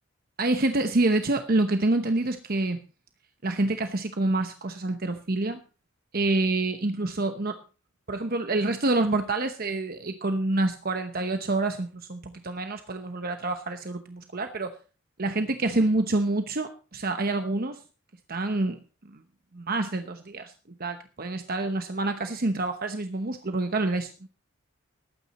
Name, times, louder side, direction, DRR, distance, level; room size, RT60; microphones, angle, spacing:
voice 1, 0.4-2.8 3.4-5.6 6.1-7.6 8.1-14.7 15.2-17.8 18.3-18.8 19.1-19.2 19.5-20.5 20.8-24.3, right 2 dB, 45° right, 8 dB, 1.0 m, -27 dB
19.5 x 9.1 x 4.2 m, 0.34 s
head